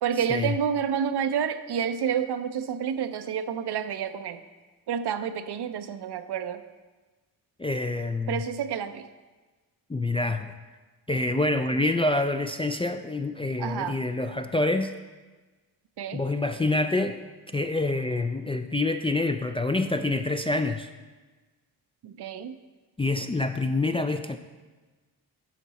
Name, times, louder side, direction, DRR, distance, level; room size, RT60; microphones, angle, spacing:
voice 1, 0.0-4.4 4.9-6.7 8.3-9.1 13.6-14.0 16.0-16.2 22.0-22.6, right 8 dB, 65° right, 10 dB, 0.6 m, -29 dB
voice 2, 7.6-8.4 9.9-10.5 11.1-14.9 16.1-17.2 17.5-20.9 23.0-24.4, left 2 dB, 15° left, 6 dB, 0.3 m, -26 dB
10.0 x 6.0 x 4.1 m, 1.3 s
cardioid pair, 80°, 42 cm